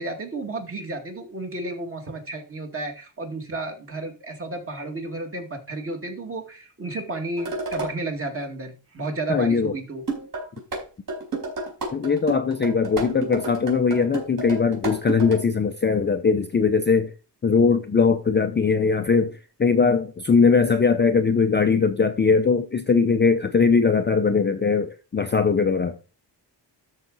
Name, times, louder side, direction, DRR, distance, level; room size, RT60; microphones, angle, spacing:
voice 1, 0.0-10.0, right 2 dB, 30° right, 2.2 m, -32 dB
sound 1, 7.4-7.9 10.1-10.8 11.1-15.4, right 3 dB, 50° right, 4.6 m, -30 dB
voice 2, 9.3-9.7 11.9-17.1 17.4-19.3 19.6-26.0, left 5 dB, 25° left, 0.5 m, -20 dB
13.0 x 4.9 x 4.0 m
wide cardioid pair, 145°, 44 cm